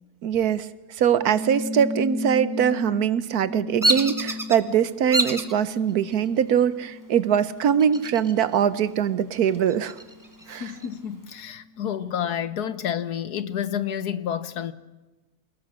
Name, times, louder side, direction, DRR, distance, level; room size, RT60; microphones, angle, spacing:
voice 1, 0.2-0.7 1.0-10.0 10.5-10.7, right 8 dB, 80° right, 1.4 m, -22 dB
sound 1, 1.1-12.0, left 3 dB, 10° left, 2.8 m, -37 dB
Bird vocalization bird call bird song, 3.8-4.6 5.1-5.5 6.1-6.6 7.8-8.6 8.9-9.0 9.5-10.9, right 1 dB, 15° right, 1.4 m, -26 dB
voice 2, 10.6-14.7, left 9 dB, 85° left, 1.6 m, -29 dB
28.0 x 19.5 x 6.4 m
omnidirectional pair, 1.6 m